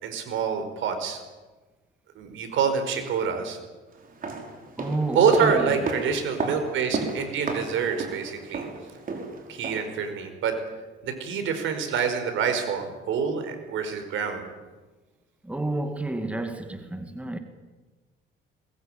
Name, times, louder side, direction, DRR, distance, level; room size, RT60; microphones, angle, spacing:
voice 1, 0.0-1.2 2.1-3.6 5.1-8.6 9.5-10.6 11.0-14.4, right 6 dB, 75° right, 5.1 m, -26 dB
sound 1, 4.0-10.0 10.3-10.4, right 3 dB, 45° right, 5.2 m, -34 dB
voice 2, 4.8-5.7 15.4-17.4, right 2 dB, 5° right, 2.3 m, -30 dB
21.5 x 21.5 x 9.1 m
cardioid pair, 115°, 20 cm